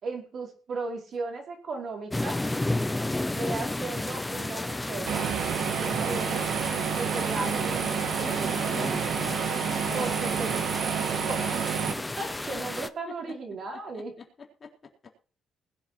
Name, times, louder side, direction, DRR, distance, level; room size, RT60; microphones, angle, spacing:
voice 1, 0.0-2.4 3.3-5.3 5.8-6.5 7.0-7.9 8.1-8.9 9.9-10.5 11.0-11.6 12.0-14.1, right 3 dB, 50° right, 2 dB, 5.0 m, -36 dB
sound 1, 2.1-12.9, left 2 dB, 10° left, 0.8 m, -32 dB
sound 2, 5.1-11.9, right 9 dB, 70° right, 1.7 m, -29 dB
voice 2, 9.9-10.3 12.5-12.6 13.1-13.4 13.9-15.1, left 5 dB, 35° left, 0 dB, 4.0 m, -44 dB
20.5 x 7.8 x 4.6 m, 0.37 s
cardioid pair, 135°, 0 cm